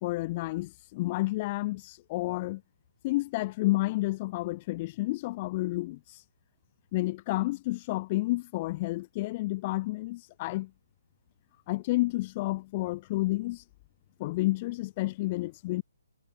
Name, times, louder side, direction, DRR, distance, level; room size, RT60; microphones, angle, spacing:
voice 1, 0.0-2.6 3.0-6.2 6.9-10.7 11.7-13.6 14.2-15.8, left 19 dB, 30° left, 2.2 m, -30 dB
hypercardioid pair, 145°, 0 cm